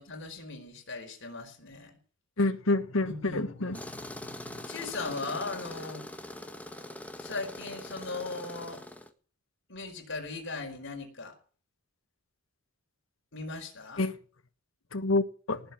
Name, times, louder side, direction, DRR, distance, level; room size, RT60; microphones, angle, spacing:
voice 1, 0.0-1.9 3.0-3.8 4.4-6.0 7.2-8.8 9.7-11.3 13.3-14.1, left 3 dB, 65° left, 4.7 m, -38 dB
voice 2, 2.4-3.8 14.0-14.2 14.9-15.6, left 2 dB, 90° left, 1.4 m, -28 dB
Tools, 3.7-9.1, left 1 dB, 10° left, 1.6 m, -42 dB
19.0 x 6.9 x 9.3 m
head